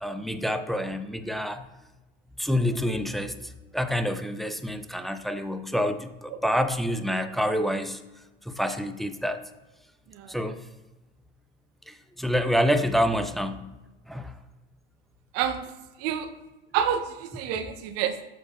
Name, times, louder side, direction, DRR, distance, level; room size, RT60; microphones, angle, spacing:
voice 1, 0.0-1.7 2.4-8.0 8.5-9.4 10.3-10.6 11.9-13.7 14.1-14.4, equal, ahead, 8 dB, 0.5 m, -27 dB
voice 2, 15.3-15.7 16.0-16.3 16.7-18.2, right 9 dB, 50° right, 8 dB, 1.0 m, -28 dB
12.5 x 4.4 x 2.6 m, 1.1 s
hypercardioid pair, 85°, 31 cm